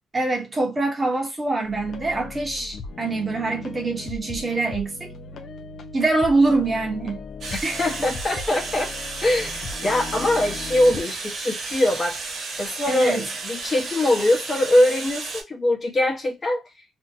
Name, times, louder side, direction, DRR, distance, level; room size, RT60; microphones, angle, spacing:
voice 1, 0.1-5.1 5.9-7.2 7.6-7.9 12.9-13.2, right 3 dB, 25° right, 0.9 m, -24 dB
sound 1, 1.6-11.0, left 4 dB, 60° left, 0.4 m, -38 dB
sound 2, 7.4-15.4, right 4 dB, 60° right, 0.8 m, -33 dB
voice 2, 7.8-12.2 12.6-16.8, left 1 dB, 30° left, 0.9 m, -22 dB
2.6 x 2.1 x 2.7 m
cardioid pair, 90°, 0 cm